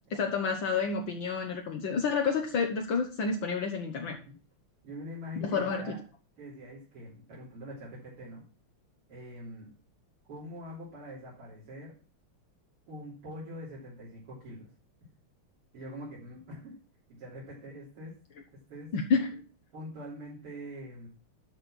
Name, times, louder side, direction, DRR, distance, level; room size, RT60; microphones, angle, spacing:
voice 1, 0.1-4.2 5.4-6.0 18.9-19.4, left 5 dB, 65° left, 2 dB, 1.8 m, -29 dB
voice 2, 4.8-6.0 6.4-8.4 9.1-9.7 10.3-11.9 12.9-14.7 15.7-16.7 17.1-18.1 18.7-18.9 19.7-21.1, equal, 85° right, -7 dB, 4.2 m, -44 dB
11.5 x 4.3 x 6.2 m, 0.36 s
omnidirectional pair, 2.4 m